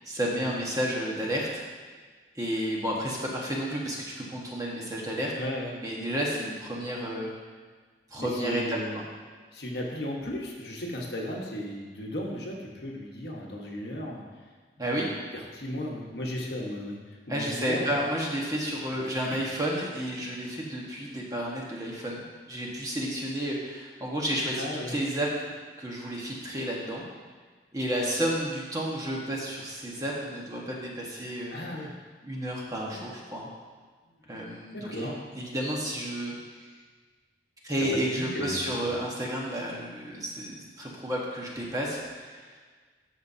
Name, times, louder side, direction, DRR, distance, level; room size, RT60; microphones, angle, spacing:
voice 1, 0.0-1.6 2.3-5.3 5.7-7.3 8.1-9.0 14.8-15.1 17.3-22.2 22.5-25.5 25.8-27.1 27.7-31.6 32.2-33.5 34.3-36.3 37.6-42.6, equal, 20° right, -3 dB, 1.3 m, -31 dB
voice 2, 5.3-5.7 8.2-9.0 9.5-14.2 14.9-15.0 15.5-17.0 17.3-17.9 19.2-19.4 24.6-24.9 31.5-31.9 32.9-33.0 34.7-35.2 37.9-38.9, left 1 dB, 65° left, -2 dB, 1.3 m, -35 dB
13.0 x 5.8 x 2.7 m, 1.5 s
head